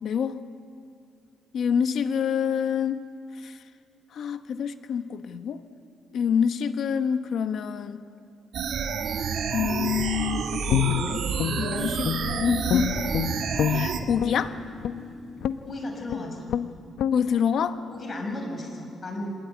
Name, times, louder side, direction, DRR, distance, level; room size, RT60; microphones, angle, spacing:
voice 1, 0.0-0.4 1.5-3.0 3.4-3.5 4.1-5.6 6.1-8.0 9.5-11.2 11.6-12.1 12.3-12.9 13.7-14.5 17.1-17.8, left 7 dB, 65° left, 9 dB, 1.2 m, -26 dB
sound 1, 8.5-14.0, right 6 dB, 70° right, 2.1 m, -29 dB
Guitar, 10.7-12.4 12.7-14.4 14.8-15.0 15.4-15.7 16.1-16.2 16.5-16.7 17.0-17.2, left 10 dB, 80° left, 0.8 m, -27 dB
sound 2, 11.1-16.3, left 3 dB, 15° right, 6.1 m, -41 dB
voice 2, 15.6-16.4 17.9-19.4, left 1 dB, 35° left, 2 dB, 6.3 m, -34 dB
26.0 x 20.5 x 9.4 m, 2.5 s
cardioid pair, 130°, 0 cm